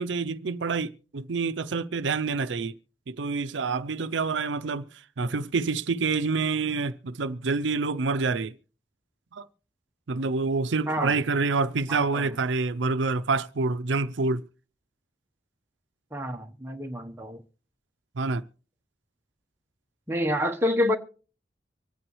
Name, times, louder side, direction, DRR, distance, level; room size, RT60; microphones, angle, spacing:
voice 1, 0.0-2.7 3.1-8.6 9.3-9.5 10.1-14.4 18.1-18.4, right 4 dB, 90° right, 0.6 m, -27 dB
voice 2, 11.9-12.3 16.1-17.4 20.1-21.0, left 1 dB, 15° right, 1.0 m, -28 dB
25.0 x 9.0 x 3.2 m
head